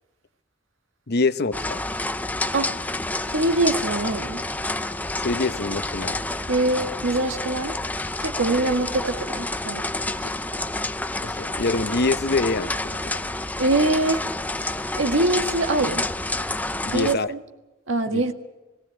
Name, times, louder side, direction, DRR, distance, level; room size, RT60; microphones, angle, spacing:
voice 1, 1.1-1.8 5.2-6.2 11.2-13.2 16.8-17.3 18.1-18.2, left 3 dB, 55° left, 12 dB, 0.9 m, -25 dB
sound 1, 1.5-17.1, left 2 dB, 10° left, 0.6 m, -29 dB
voice 2, 3.3-4.4 6.5-7.8 8.2-10.3 13.6-14.2 15.0-16.0 16.9-17.4 17.9-18.3, right 2 dB, 80° right, 6 dB, 1.8 m, -23 dB
19.0 x 17.0 x 8.8 m, 1.1 s
head